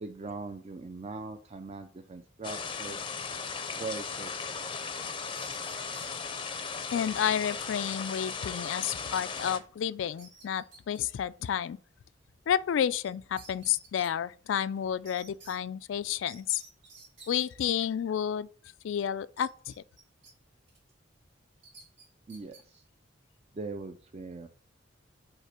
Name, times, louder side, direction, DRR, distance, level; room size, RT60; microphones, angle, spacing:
voice 1, 0.0-3.0 3.8-5.0 22.3-22.8 23.5-24.5, right 3 dB, 35° right, 0.5 m, -41 dB
sound 1, 2.4-9.6, left 5 dB, 25° left, 0.6 m, -37 dB
sound 2, 4.9-6.1 8.8-9.2 9.5-9.6 10.0-11.0 13.0-13.1 13.4-14.1 15.1-15.6 16.3-17.7 19.4-20.3 20.7-20.9 21.6-22.6, right 3 dB, 70° right, 2.1 m, -52 dB
voice 2, 6.9-11.8 12.5-16.6 17.3-18.5 18.8-19.7, left 9 dB, 80° left, 0.3 m, -30 dB
5.5 x 4.1 x 5.9 m
head